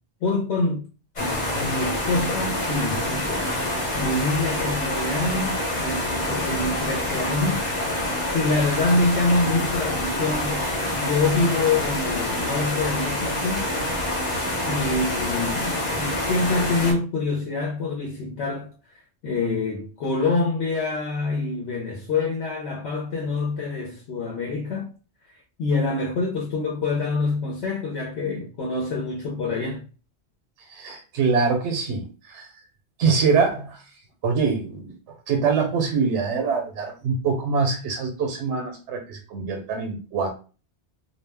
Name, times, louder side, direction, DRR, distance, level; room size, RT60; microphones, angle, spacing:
voice 1, 0.2-0.8 1.2-3.5 3.9-7.7 7.9-10.6 10.9-13.7 14.6-18.7 19.2-24.9 25.2-25.3 25.6-29.8, left 3 dB, 80° left, 0.9 m, -26 dB
sound 1, 1.2-16.9, left 1 dB, 40° left, 0.9 m, -26 dB
voice 2, 30.7-32.5 33.0-33.8 34.2-34.9 35.3-40.3, right 5 dB, 85° right, 0.9 m, -24 dB
2.3 x 2.1 x 3.3 m
omnidirectional pair, 1.1 m